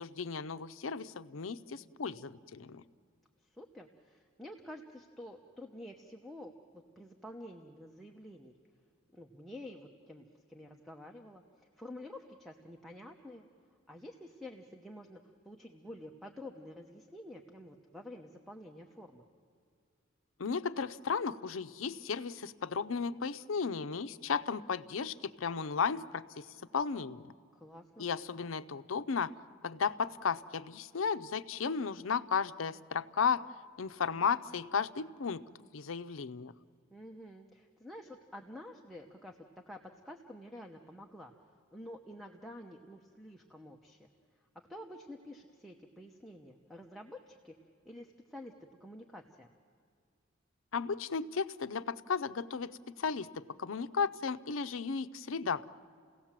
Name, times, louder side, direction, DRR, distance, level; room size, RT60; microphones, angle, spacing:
voice 1, 0.0-2.8 20.4-26.5 26.7-27.3 28.0-29.3 29.6-33.4 33.8-35.4 35.7-36.5 50.7-55.7, left 5 dB, 85° left, 13 dB, 0.6 m, -34 dB
voice 2, 3.4-8.6 9.1-13.5 13.9-19.2 27.5-28.1 36.9-41.3 41.7-44.1 44.7-47.5 47.8-49.5, left 1 dB, ahead, 0 dB, 1.0 m, -49 dB
30.0 x 17.0 x 7.4 m, 2.2 s
head